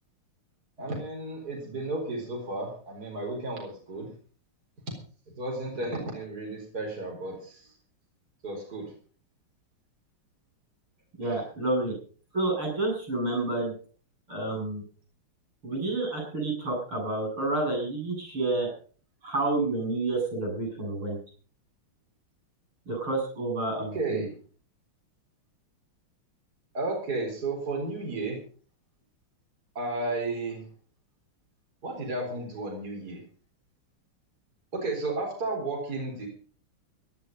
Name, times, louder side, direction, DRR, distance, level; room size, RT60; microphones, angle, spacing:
voice 1, 0.8-4.1 5.4-7.7 8.4-8.8 11.2-11.3 23.8-24.3 26.7-28.4 29.7-30.6 31.8-33.2 34.7-36.3, right 2 dB, 45° right, 0 dB, 4.7 m, -33 dB
voice 2, 11.2-11.9 12.3-13.7 14.3-14.8 15.6-18.7 19.2-21.2 22.9-24.3, right 2 dB, 90° right, 2 dB, 8.6 m, -29 dB
17.0 x 11.0 x 5.4 m, 0.42 s
omnidirectional pair, 2.3 m